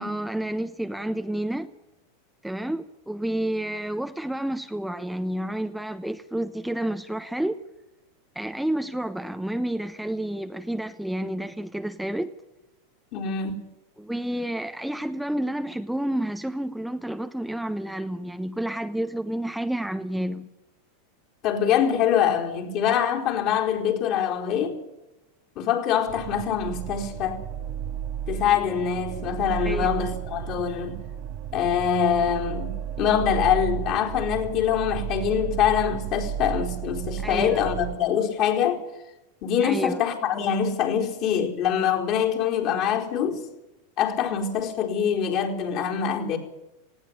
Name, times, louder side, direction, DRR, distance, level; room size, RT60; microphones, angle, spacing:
voice 1, 0.0-1.7 2.4-7.6 8.3-12.3 14.0-20.5 29.6-30.0 37.2-37.6 39.6-40.0, right 1 dB, ahead, 0.9 m, -30 dB
voice 2, 13.1-13.6 21.4-24.8 25.6-27.4 28.3-31.0 31.5-38.8 39.4-43.4 44.0-46.4, left 8 dB, 50° left, 4.4 m, -24 dB
sound 1, 26.1-38.0, right 10 dB, 55° right, 1.2 m, -33 dB
18.5 x 16.5 x 9.8 m
hypercardioid pair, 115°, 0 cm